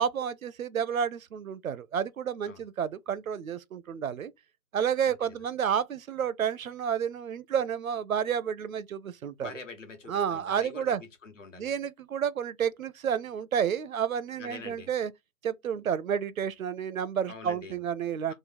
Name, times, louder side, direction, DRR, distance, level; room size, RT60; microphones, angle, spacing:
voice 1, 0.0-4.3 4.7-9.5 10.1-11.0 11.6-15.1 15.4-18.3, right 8 dB, 75° right, 0.6 m, -30 dB
voice 2, 9.4-11.7 14.4-14.9 17.3-17.8 18.3-18.4, left 4 dB, 65° left, 1.3 m, -44 dB
3.1 x 2.1 x 4.1 m
figure-of-eight pair, 160°, 41 cm